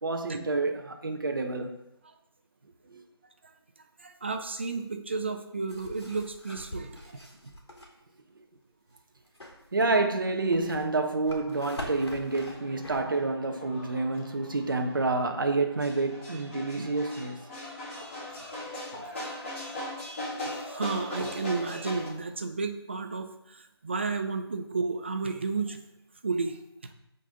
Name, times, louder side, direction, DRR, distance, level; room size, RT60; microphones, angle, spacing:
voice 1, 0.0-1.8 2.9-3.0 9.7-17.4, right 3 dB, 50° right, 1.3 m, -28 dB
voice 2, 4.0-7.2 20.5-25.8 26.2-26.6, right 4 dB, 25° right, 0.7 m, -32 dB
sound 1, 5.7-7.9 9.2-13.0, left 1 dB, 80° left, 3.6 m, -43 dB
sound 2, 11.5-22.1, left 1 dB, 30° left, 3.1 m, -40 dB
14.0 x 5.7 x 3.8 m
figure-of-eight pair, 170°, 14 cm